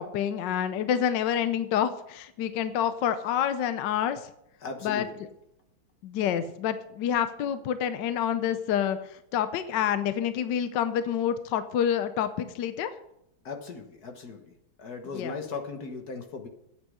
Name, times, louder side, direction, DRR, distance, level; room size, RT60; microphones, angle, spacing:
voice 1, 0.0-4.3 4.8-5.1 6.0-12.9 15.1-15.3, left 9 dB, 70° left, 11 dB, 1.2 m, -28 dB
voice 2, 4.6-5.2 13.4-14.5 14.8-16.5, left 4 dB, 50° left, 5 dB, 1.8 m, -38 dB
9.0 x 8.3 x 6.3 m, 0.79 s
omnidirectional pair, 2.3 m